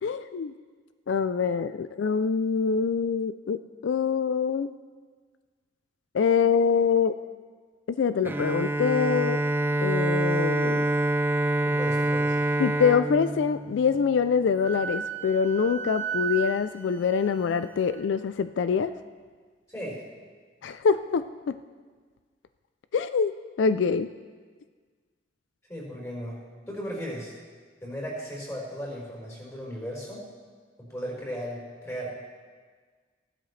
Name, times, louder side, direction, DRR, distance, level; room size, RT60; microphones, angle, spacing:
voice 1, 0.0-0.5 1.1-4.7 6.1-7.2 8.0-9.4 9.8-10.9 12.6-18.9 20.6-21.6 22.9-23.3 23.6-24.1, left 6 dB, 90° left, 12 dB, 0.4 m, -25 dB
Bowed string instrument, 8.2-14.3, right 1 dB, 10° right, 0.4 m, -26 dB
voice 2, 11.6-12.4 19.7-20.0 25.7-26.4 26.7-27.3 27.8-30.2 30.8-32.1, equal, 15° left, -4 dB, 4.5 m, -36 dB
Wind instrument woodwind instrument, 14.6-18.0, right 7 dB, 85° right, 1.3 m, -35 dB
16.0 x 11.5 x 3.2 m, 1.5 s
head